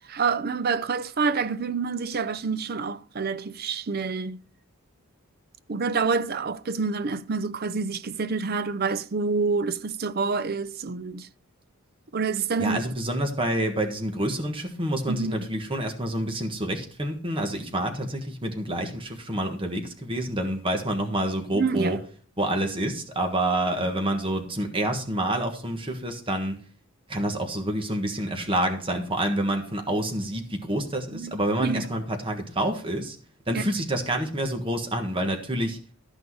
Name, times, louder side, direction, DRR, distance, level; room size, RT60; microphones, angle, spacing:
voice 1, 0.1-4.4 5.7-11.3 12.1-12.8 15.1-15.5 21.5-22.0 31.1-31.3 31.6-31.9 33.5-33.6, right 4 dB, 45° right, 0.5 m, -27 dB
voice 2, 12.6-22.0 22.4-26.6 27.1-33.2 33.5-35.8, right 1 dB, 25° right, 1.5 m, -28 dB
13.0 x 6.2 x 4.7 m
head